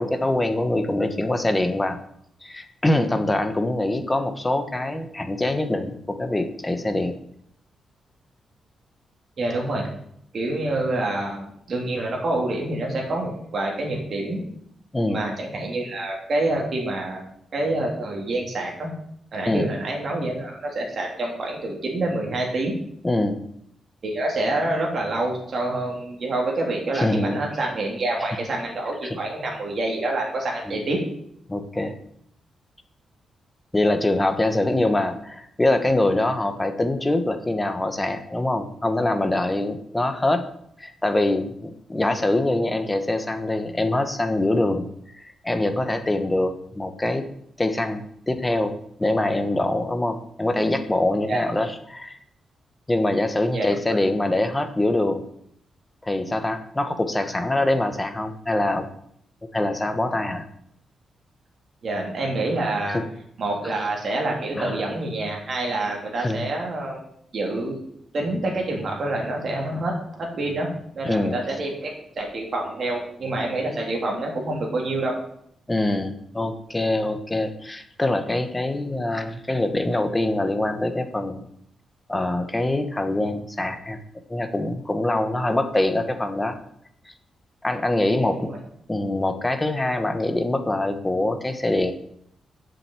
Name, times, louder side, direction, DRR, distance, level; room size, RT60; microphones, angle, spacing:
voice 1, 0.0-2.0 2.4-7.2 14.9-15.2 19.4-19.7 23.0-23.4 26.9-27.4 29.0-29.2 30.7-30.8 31.5-32.0 33.7-40.5 40.8-44.9 45.2-47.2 47.6-52.2 52.9-55.2 56.0-58.9 59.5-60.5 62.9-63.0 64.6-64.8 66.2-66.5 71.0-71.4 75.7-81.4 82.1-84.0 84.3-86.6 87.6-88.5 88.9-91.9, left 1 dB, 10° left, 8 dB, 1.1 m, -24 dB
voice 2, 9.4-9.8 10.3-14.4 15.1-18.9 19.3-22.7 24.0-31.0 51.3-51.4 53.5-54.0 61.8-63.0 63.4-67.0 67.3-67.7 68.1-71.9 72.2-75.1 88.2-88.6, right 2 dB, 45° right, -1 dB, 3.4 m, -27 dB
7.8 x 7.5 x 8.4 m, 0.70 s
wide cardioid pair, 155°, 0 cm